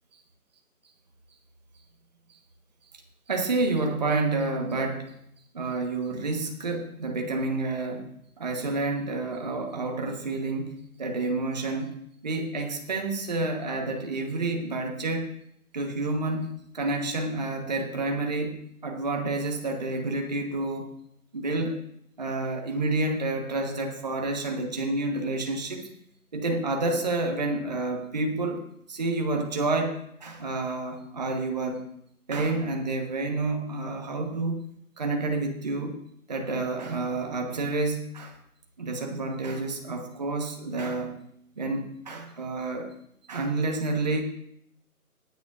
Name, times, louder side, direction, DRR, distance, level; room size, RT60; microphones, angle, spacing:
voice 1, 3.3-5.1 5.5-8.1 8.4-12.0 12.2-15.3 15.7-16.5 16.7-20.9 21.3-21.8 22.2-25.9 26.3-31.8 32.3-34.6 35.0-36.0 36.3-38.3 38.8-41.1 41.6-42.9 43.3-44.2, right 2 dB, 30° right, 3 dB, 1.3 m, -29 dB
18.5 x 9.2 x 2.6 m, 0.72 s
figure-of-eight pair, 155°, 45 cm